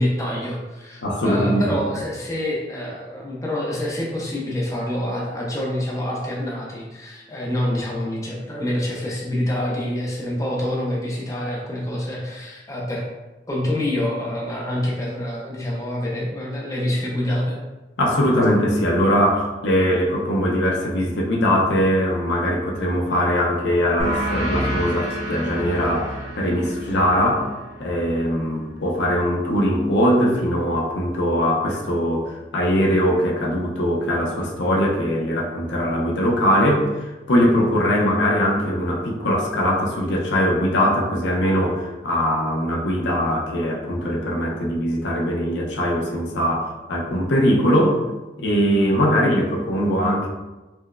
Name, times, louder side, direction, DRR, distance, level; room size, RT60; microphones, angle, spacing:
voice 1, 0.0-13.0 13.5-17.6, left 1 dB, 20° left, -4 dB, 0.5 m, -26 dB
voice 2, 1.0-1.7 18.0-27.5 27.8-36.8 37.3-48.0 48.4-50.3, equal, 85° left, -1 dB, 0.6 m, -21 dB
sound 1, 24.0-29.2, right 1 dB, 40° right, 0.7 m, -30 dB
4.5 x 2.0 x 2.2 m, 1.1 s
head